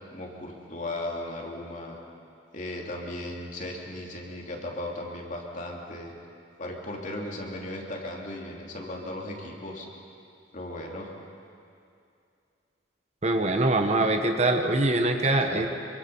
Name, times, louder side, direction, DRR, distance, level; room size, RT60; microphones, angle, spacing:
voice 1, 0.1-2.0 2.5-6.1 6.6-9.9 10.5-11.1 15.2-15.7, left 1 dB, 45° left, -1 dB, 3.1 m, -36 dB
voice 2, 13.2-15.7, right 2 dB, 35° right, 5 dB, 1.3 m, -23 dB
25.0 x 24.0 x 5.6 m, 2.5 s
head